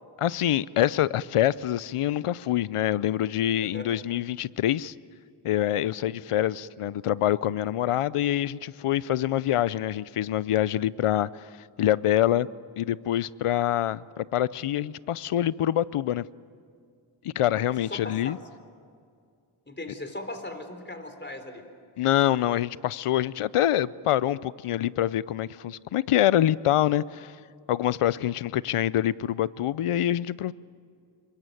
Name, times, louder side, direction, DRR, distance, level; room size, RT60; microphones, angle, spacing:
voice 1, 0.2-4.9 5.4-11.5 11.8-12.5 12.8-16.2 17.2-18.4 22.0-27.3 27.7-30.5, left 12 dB, 90° left, 19 dB, 0.6 m, -25 dB
voice 2, 17.9-18.4 19.7-21.6, left 1 dB, 20° left, 7 dB, 3.7 m, -38 dB
26.5 x 23.0 x 9.2 m, 2.2 s
cardioid pair, 50°, 50 cm